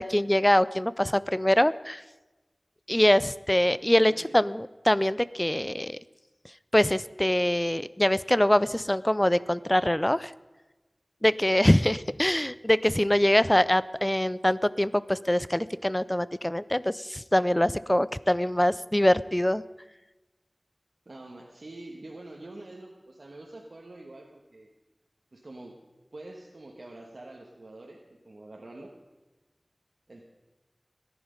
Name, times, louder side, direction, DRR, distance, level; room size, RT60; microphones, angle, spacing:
voice 1, 0.0-2.0 2.9-6.0 6.7-10.3 11.2-19.6, left 1 dB, 20° left, 17 dB, 0.4 m, -24 dB
voice 2, 21.0-24.7 25.3-25.8 26.1-29.0 30.1-30.2, right 2 dB, 85° right, 0 dB, 1.4 m, -45 dB
18.0 x 11.0 x 5.2 m, 1.1 s
wide cardioid pair, 50°, 0 cm